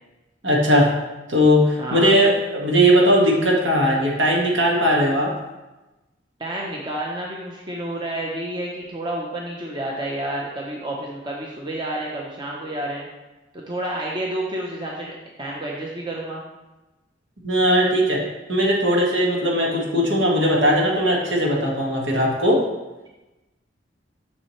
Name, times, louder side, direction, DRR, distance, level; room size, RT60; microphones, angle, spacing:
voice 1, 0.4-0.9 1.3-5.3 17.4-18.2 18.5-22.6, equal, 90° right, -2 dB, 1.8 m, -18 dB
voice 2, 1.8-2.1 6.4-13.1 13.5-16.4, right 1 dB, 25° right, -3 dB, 0.8 m, -30 dB
7.2 x 6.6 x 3.2 m, 1.1 s
head